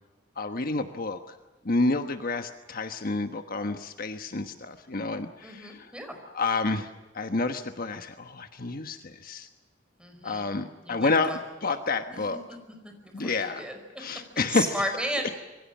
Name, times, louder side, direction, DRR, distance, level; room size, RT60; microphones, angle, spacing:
voice 1, 0.4-1.2 1.6-5.9 6.3-9.5 10.2-12.4 13.1-13.7 14.0-14.8, left 3 dB, 50° left, 8 dB, 1.2 m, -29 dB
voice 2, 5.4-6.1 10.0-10.5 10.8-11.4 11.7-11.8 12.1-12.4 12.8-13.7 14.5-15.4, equal, 5° right, 5 dB, 5.2 m, -34 dB
26.5 x 23.0 x 7.4 m, 1.2 s
head